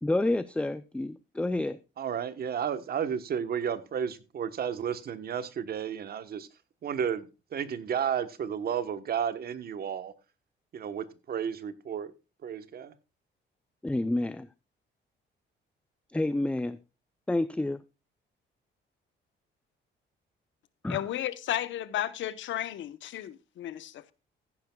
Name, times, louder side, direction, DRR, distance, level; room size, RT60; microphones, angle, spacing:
voice 1, 0.0-1.8 13.8-14.5 16.1-16.8 17.3-17.8 20.8-21.0, left 2 dB, 5° left, 0.4 m, -29 dB
voice 2, 2.0-6.5 6.8-10.1 10.7-12.1 12.4-12.9, right 8 dB, 50° right, 1.1 m, -32 dB
voice 3, 20.9-24.1, left 12 dB, 75° left, 1.0 m, -33 dB
14.5 x 10.5 x 2.3 m
cardioid pair, 135°, 20 cm